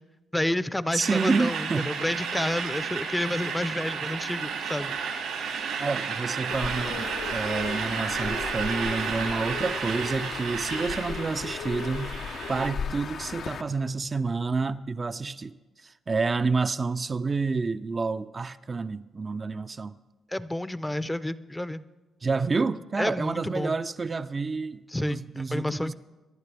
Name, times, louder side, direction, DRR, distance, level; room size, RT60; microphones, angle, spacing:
voice 1, 0.3-4.9 20.3-21.8 23.0-23.7 24.9-25.9, left 1 dB, 10° left, 0.6 m, -30 dB
voice 2, 0.9-1.9 5.8-12.2 12.5-15.5 15.8-20.0 22.2-25.9, right 4 dB, 40° right, 0.5 m, -29 dB
sound 1, 1.0-12.7, right 6 dB, 85° right, 2.4 m, -32 dB
Bird, 6.5-13.6, left 6 dB, 65° left, 0.7 m, -35 dB
25.0 x 11.0 x 3.4 m
hypercardioid pair, 50°, 0 cm